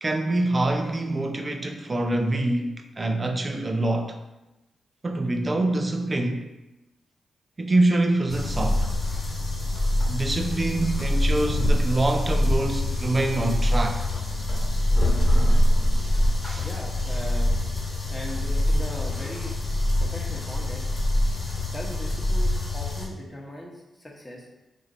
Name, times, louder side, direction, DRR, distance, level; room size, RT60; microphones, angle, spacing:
voice 1, 0.0-4.2 5.0-6.5 7.6-8.9 10.1-14.1 15.9-16.7 18.0-18.1, right 2 dB, 35° right, 0.5 m, -25 dB
sound 1, 8.3-23.1, left 1 dB, 35° left, 1.5 m, -24 dB
voice 2, 16.6-17.5 18.1-19.5 20.0-20.9 21.6-24.5, left 1 dB, 20° left, 1.1 m, -39 dB
2.8 x 2.6 x 4.1 m
supercardioid pair, 40°, 0 cm